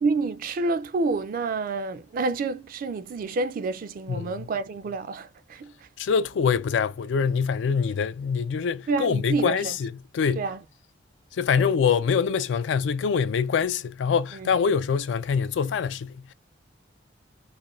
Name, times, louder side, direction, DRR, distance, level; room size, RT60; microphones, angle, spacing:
voice 1, 0.0-5.9 8.9-9.7 10.4-10.6 11.6-11.7 14.3-14.5, right 3 dB, 50° right, 0.3 m, -28 dB
voice 2, 4.1-4.5 6.0-10.4 11.3-16.3, left 6 dB, 70° left, 0.3 m, -25 dB
2.4 x 2.2 x 2.9 m
head